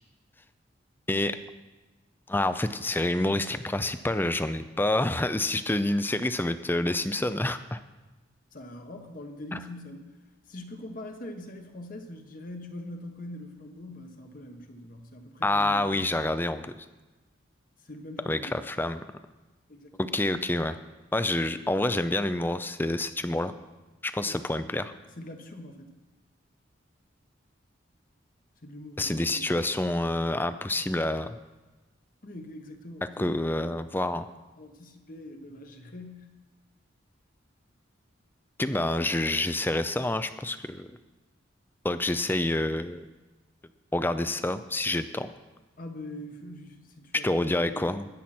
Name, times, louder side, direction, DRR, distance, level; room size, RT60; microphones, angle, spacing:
voice 1, 2.3-7.8 9.5-9.6 15.4-16.7 18.3-19.0 20.0-20.8 21.1-23.5 24.0-24.9 29.0-31.4 33.2-34.3 38.6-40.9 41.8-43.0 43.9-45.3 47.2-48.1, left 1 dB, 10° left, 11 dB, 0.5 m, -27 dB
voice 2, 8.5-10.1 10.5-16.0 17.8-18.6 19.7-20.1 24.2-24.4 25.2-25.9 28.6-29.5 32.2-33.4 34.6-36.3 45.8-48.0, left 1 dB, 45° left, 5 dB, 1.3 m, -43 dB
21.0 x 7.5 x 4.4 m, 1.2 s
head